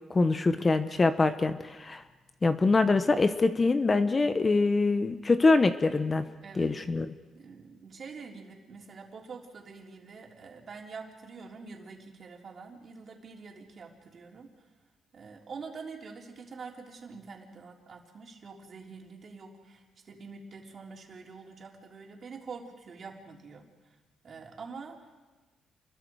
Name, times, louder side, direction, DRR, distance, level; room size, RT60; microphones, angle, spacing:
voice 1, 0.1-2.0 2.4-6.3 6.6-7.1, left 3 dB, 25° left, 10 dB, 1.1 m, -24 dB
voice 2, 6.4-6.7 7.3-14.5 15.1-23.9 24.2-25.2, right 4 dB, 45° right, 0 dB, 3.7 m, -46 dB
29.0 x 22.0 x 4.8 m, 1.3 s
cardioid pair, 100°, 0 cm